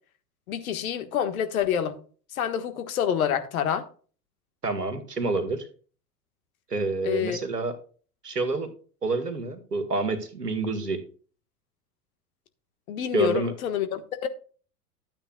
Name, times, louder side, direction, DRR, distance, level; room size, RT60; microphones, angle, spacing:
voice 1, 0.5-2.0 2.3-3.8 7.0-7.4 12.9-14.3, left 9 dB, 60° left, 1.5 m, -27 dB
voice 2, 4.6-5.7 6.7-7.8 8.2-8.7 9.0-11.0 13.1-13.5, right 3 dB, 85° right, 1.7 m, -28 dB
12.5 x 9.0 x 2.3 m
figure-of-eight pair, 90°, 46 cm